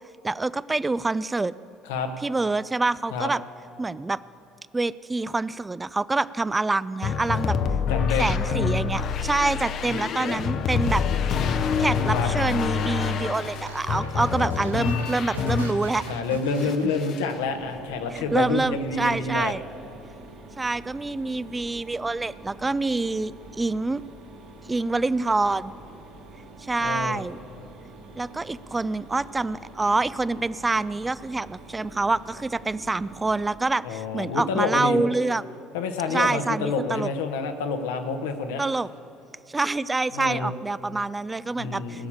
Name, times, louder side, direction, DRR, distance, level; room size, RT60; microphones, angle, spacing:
voice 1, 0.2-1.5 2.2-3.4 3.8-4.2 4.7-7.6 8.2-11.0 11.6-16.0 16.8-16.9 18.1-19.6 20.6-24.0 24.7-25.8 26.6-27.4 28.2-35.4 36.1-37.1 38.6-38.9 39.5-42.1, right 3 dB, 20° right, 18 dB, 0.4 m, -26 dB
sound 1, 7.0-16.2 16.5-17.3, left 6 dB, 55° left, 0.8 m, -26 dB
voice 2, 7.9-8.3 9.9-10.7 12.1-12.3 16.1-19.5 26.8-27.2 33.8-35.0 35.7-38.6 40.1-40.5 41.6-42.1, left 4 dB, 75° left, 6 dB, 1.1 m, -28 dB
sound 2, 9.7-17.6 18.4-19.2, right 8 dB, 90° right, 0.4 m, -43 dB
Mechanisms, 17.4-33.6, right 2 dB, 65° right, 1.9 m, -46 dB
18.5 x 7.1 x 8.7 m, 2.8 s
hypercardioid pair, 60°, 0 cm